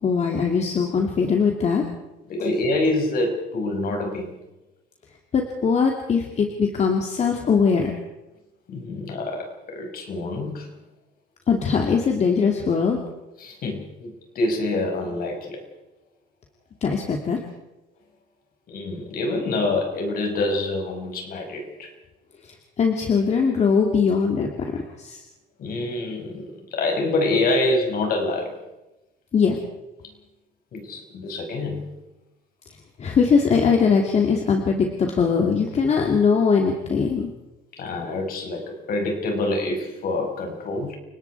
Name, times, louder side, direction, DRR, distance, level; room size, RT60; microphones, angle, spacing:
voice 1, 0.0-1.8 5.3-7.9 11.5-13.0 16.8-17.4 22.8-25.2 29.3-29.6 33.0-37.3, left 5 dB, 40° left, 2 dB, 2.6 m, -21 dB
voice 2, 2.3-4.3 8.7-10.7 13.4-15.6 18.7-21.9 25.6-28.5 30.7-31.9 37.8-40.9, left 2 dB, 60° left, 3 dB, 5.7 m, -26 dB
30.0 x 18.5 x 4.8 m, 1.0 s
cardioid pair, 110°, 17 cm